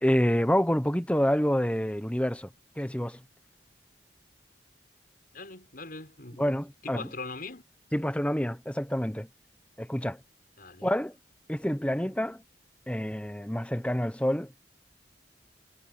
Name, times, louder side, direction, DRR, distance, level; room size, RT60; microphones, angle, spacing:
voice 1, 0.0-2.5 2.8-3.2 6.4-7.1 7.9-9.3 9.8-10.2 10.8-11.2 11.5-12.4 12.9-14.5, equal, 5° left, 1.1 m, -27 dB
voice 2, 5.3-6.5 6.8-7.6 10.6-10.9, left 3 dB, 55° left, 6.0 m, -41 dB
head